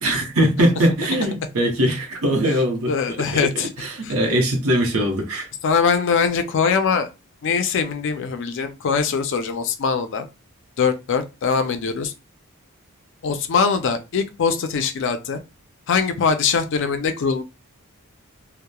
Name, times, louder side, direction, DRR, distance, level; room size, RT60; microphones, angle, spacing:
voice 1, 0.0-3.5 3.8-5.5, equal, 65° right, 0.7 m, -21 dB
voice 2, 2.9-3.7 4.0-4.1 5.6-7.1 7.4-10.3 10.8-12.1 13.2-15.4 15.9-17.4, left 5 dB, 55° left, 0.4 m, -22 dB
2.9 x 2.0 x 2.2 m
head